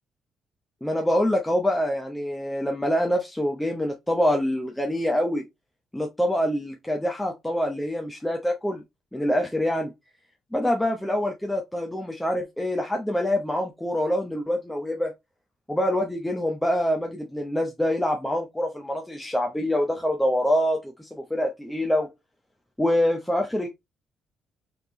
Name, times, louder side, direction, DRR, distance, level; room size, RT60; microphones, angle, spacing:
voice 1, 0.8-5.5 5.9-8.8 9.1-9.9 10.5-15.1 15.7-22.1 22.8-23.7, left 1 dB, 5° left, 0.8 m, -25 dB
4.0 x 3.4 x 3.0 m
cardioid pair, 90°, 0 cm